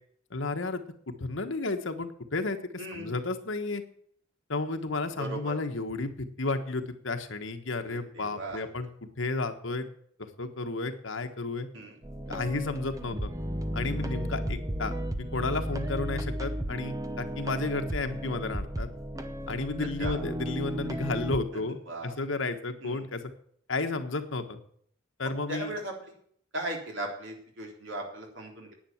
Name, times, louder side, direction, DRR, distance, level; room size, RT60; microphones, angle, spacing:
voice 1, 0.3-2.6 2.9-3.8 4.5-9.9 10.2-11.7 12.3-13.3 13.7-14.9 15.2-18.9 19.5-21.8 22.0-23.2 23.7-24.6 25.2-25.7, left 3 dB, 80° left, 7 dB, 1.4 m, -32 dB
voice 2, 2.8-3.1 5.2-5.6 7.8-8.6 11.7-12.0 20.0-20.2 21.5-22.2 22.8-23.0 25.2-26.1 26.5-28.7, right 1 dB, 75° right, 1 dB, 3.6 m, -38 dB
sound 1, 12.0-21.4, equal, 15° right, 0.8 m, -34 dB
10.5 x 9.0 x 7.2 m, 0.62 s
head